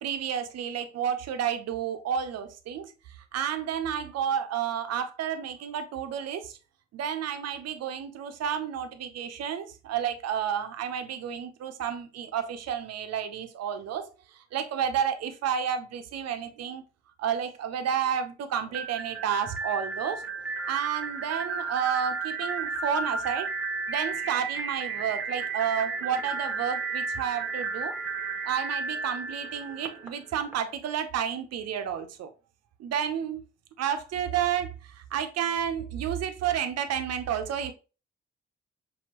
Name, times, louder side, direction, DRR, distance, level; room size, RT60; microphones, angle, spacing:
voice 1, 0.0-2.9 3.3-6.6 6.9-16.8 17.2-20.2 20.7-23.5 23.9-27.9 28.4-32.3 32.8-33.4 33.8-37.7, right 8 dB, 55° right, 0.7 m, -31 dB
sound 1, 18.7-30.5, right 4 dB, 5° right, 1.2 m, -33 dB
5.8 x 2.2 x 2.9 m
hypercardioid pair, 40°, 30 cm